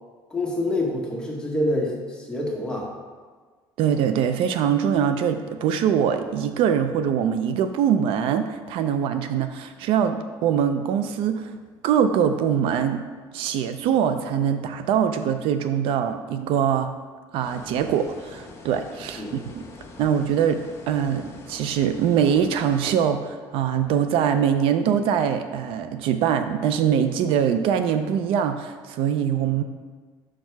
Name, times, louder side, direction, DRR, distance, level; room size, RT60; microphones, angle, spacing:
voice 1, 0.3-2.9 19.2-19.4, left 1 dB, 10° left, -3 dB, 1.3 m, -26 dB
voice 2, 3.8-11.5 11.8-13.0 13.3-16.9 17.3-19.2 19.5-19.6 20.0-20.6 20.9-29.6, right 8 dB, 75° right, 9 dB, 0.4 m, -23 dB
sound 1, 17.4-23.0, left 3 dB, 30° left, 1.1 m, -44 dB
6.0 x 4.5 x 4.6 m, 1.5 s
cardioid pair, 125°, 9 cm